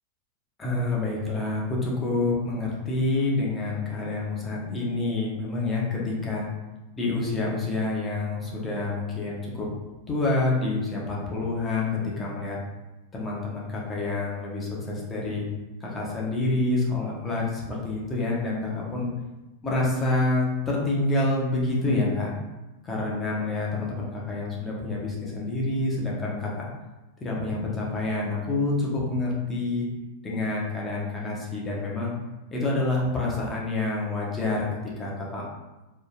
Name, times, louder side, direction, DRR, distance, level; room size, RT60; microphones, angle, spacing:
voice 1, 0.6-6.5 7.0-9.7 10.1-12.6 13.1-15.5 15.8-19.1 19.6-22.3 22.8-26.7 27.2-29.9 30.2-32.1 32.5-34.7 35.0-35.4, left 2 dB, 15° left, -4 dB, 1.2 m, -27 dB
4.3 x 3.4 x 2.5 m, 1.1 s
figure-of-eight pair, 90°, 0 cm